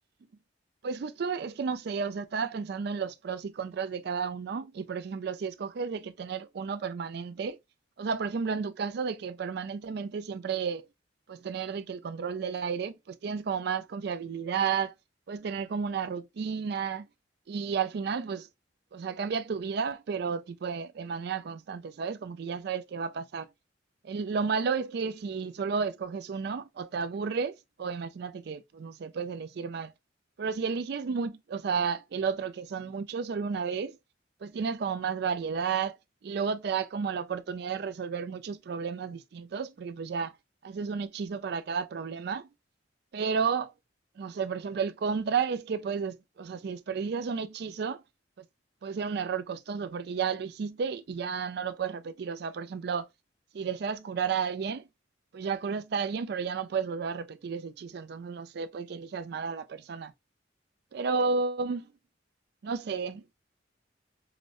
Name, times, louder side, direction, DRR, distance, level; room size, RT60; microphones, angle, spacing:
voice 1, 0.8-7.6 8.0-10.9 11.3-14.9 15.3-17.1 17.5-18.5 18.9-23.5 24.0-29.9 30.4-34.0 34.4-36.0 36.2-40.3 40.6-42.5 43.1-43.7 44.2-48.0 48.4-48.5 48.8-53.1 53.5-54.8 55.3-60.1 60.9-61.9 62.6-63.3, right 5 dB, 55° right, 0.4 m, -32 dB
4.8 x 2.0 x 2.4 m
head